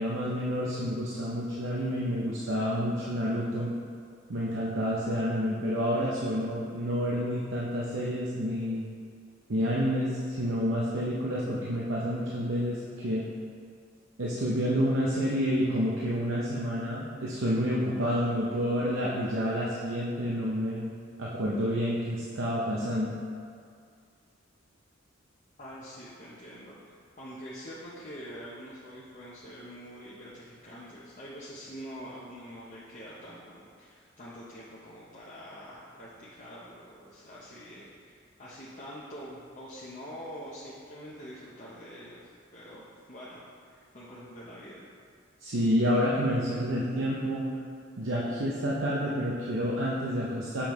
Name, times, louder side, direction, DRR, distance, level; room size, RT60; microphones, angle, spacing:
voice 1, 0.0-3.7 4.3-8.9 9.5-13.2 14.2-20.9 21.2-23.2 45.4-47.4 48.0-50.7, equal, 75° right, -6 dB, 0.7 m, -29 dB
voice 2, 25.6-42.8 43.1-44.8, equal, 40° left, -8 dB, 0.7 m, -45 dB
7.1 x 5.2 x 3.1 m, 2.2 s
head